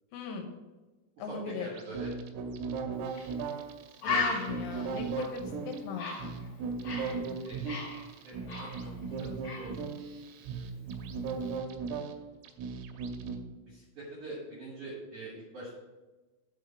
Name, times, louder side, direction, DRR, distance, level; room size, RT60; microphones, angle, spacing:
voice 1, 0.1-0.5 1.2-1.7 4.0-6.3, left 6 dB, 80° left, 3 dB, 3.2 m, -39 dB
voice 2, 1.3-2.1 7.4-7.6 8.2-8.9 9.2-9.7 10.5-10.8 13.6-15.7, right 2 dB, 65° right, -4 dB, 1.9 m, -44 dB
sound 1, 1.7-13.4, right 5 dB, 85° right, 3.4 m, -37 dB
Bird, 3.1-3.3 3.6-3.7 4.0-7.2 7.5-9.1 9.4-9.7, left 4 dB, 35° left, 2.1 m, -35 dB
8.0 x 4.5 x 6.8 m, 1.2 s
omnidirectional pair, 6.0 m